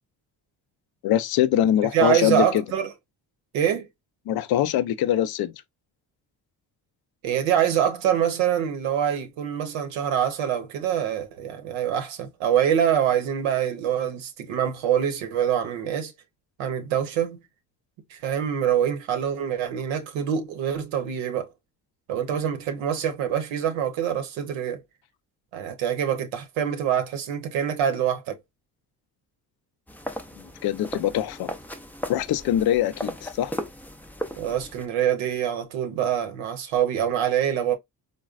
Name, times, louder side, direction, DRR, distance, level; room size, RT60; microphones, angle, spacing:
voice 1, 1.0-2.6 4.3-5.5 30.6-31.5 32.1-33.5, left 11 dB, 55° left, 0.5 m, -23 dB
voice 2, 1.9-2.9 3.5-3.9 7.2-16.1 16.6-17.4 18.1-21.5 22.1-24.8 25.5-28.4 34.4-37.8, right 9 dB, 75° right, 0.8 m, -25 dB
sound 1, 29.9-34.9, equal, 5° left, 0.4 m, -36 dB
3.8 x 2.1 x 2.3 m
hypercardioid pair, 55°, 47 cm